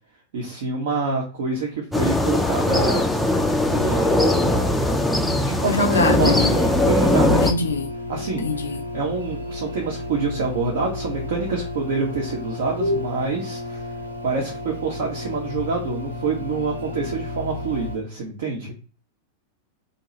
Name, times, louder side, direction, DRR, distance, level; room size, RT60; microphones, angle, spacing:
voice 1, 0.3-3.1 3.4-4.6 5.4-7.6 8.1-8.4 8.9-13.9 14.2-18.7, right 4 dB, 55° right, 0.7 m, -26 dB
sound 1, 1.9-7.5, left 1 dB, 5° left, 0.4 m, -20 dB
voice 2, 5.6-6.6 7.4-7.9 8.4-8.8 12.8-13.1, left 3 dB, 70° left, 0.3 m, -23 dB
sound 2, 6.2-18.0, left 2 dB, 85° left, 0.8 m, -33 dB
2.6 x 2.2 x 3.1 m
figure-of-eight pair, 90°, 0 cm